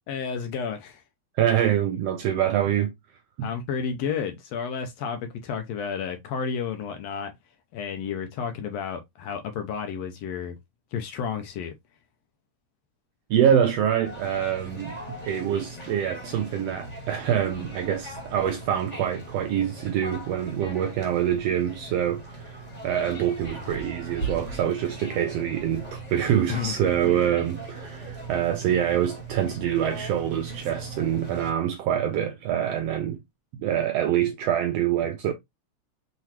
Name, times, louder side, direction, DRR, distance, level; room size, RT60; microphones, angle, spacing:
voice 1, 0.1-1.0 3.4-7.3 7.7-10.6 10.9-11.7 26.5-26.7 27.0-27.5, left 6 dB, 75° left, 1.7 m, -31 dB
voice 2, 1.4-2.9 3.4-3.5 13.3-33.2 33.6-35.3, right 10 dB, 80° right, 1.4 m, -25 dB
sound 1, 14.0-31.5, right 2 dB, 20° left, 1.3 m, -39 dB
5.8 x 3.1 x 2.9 m
omnidirectional pair, 3.4 m